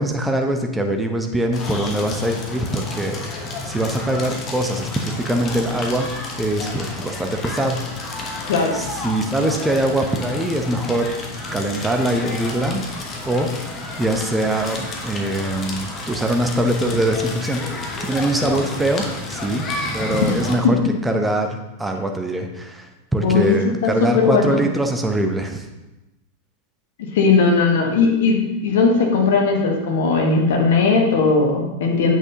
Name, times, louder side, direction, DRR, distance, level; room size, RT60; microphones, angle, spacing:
voice 1, 0.0-3.2 3.6-6.1 6.4-7.8 8.4-11.1 11.5-12.9 13.3-20.8 21.0-25.7, right 1 dB, 10° right, 4 dB, 0.8 m, -23 dB
Crackle, 1.5-20.5, left 2 dB, 25° left, 1.1 m, -31 dB
voice 2, 23.2-24.6 27.1-32.1, left 4 dB, 55° left, 1 dB, 1.3 m, -18 dB
8.0 x 6.0 x 2.8 m, 1.0 s
figure-of-eight pair, 90°, 0 cm